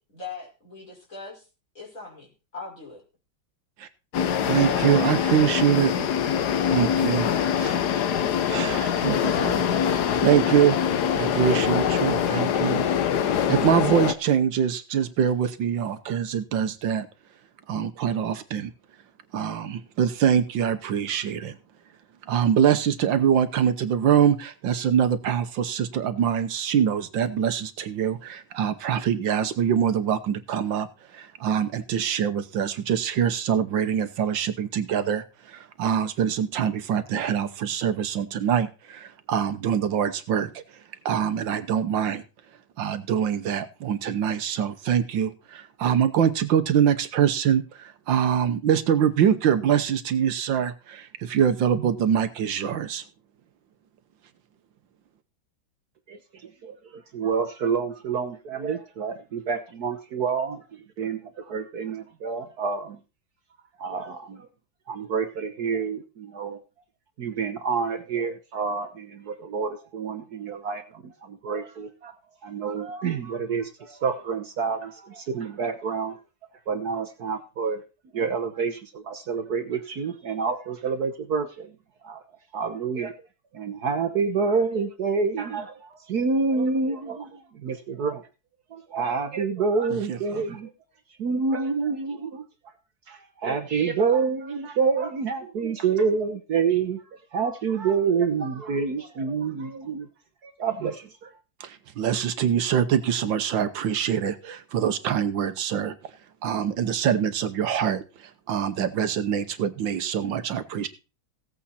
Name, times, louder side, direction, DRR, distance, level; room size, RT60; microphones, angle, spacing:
voice 1, 0.1-1.4 1.7-3.0 4.6-5.3, left 2 dB, 40° left, 5.7 m, -39 dB
sound 1, 4.1-14.1, left 8 dB, 65° left, 1.4 m, -24 dB
voice 2, 4.5-6.1 6.7-7.3 7.6-7.8 8.5-10.8 11.1-12.8 13.3-17.1 17.7-18.7 19.3-21.6 22.3-30.9 31.1-40.6 41.0-42.2 42.8-53.0 90.1-90.4 101.6-105.9 106.4-110.9, right 8 dB, 75° right, 1.7 m, -24 dB
voice 3, 56.1-63.0 63.8-64.5 64.9-66.6 67.2-72.2 72.4-76.2 76.7-77.8 78.1-81.7 82.0-82.2 82.5-83.1 83.5-88.2 88.7-90.7 91.2-92.4 93.1-97.0 97.3-100.1 100.4-101.3, right 5 dB, 60° right, 1.4 m, -28 dB
16.0 x 8.5 x 4.2 m
omnidirectional pair, 2.1 m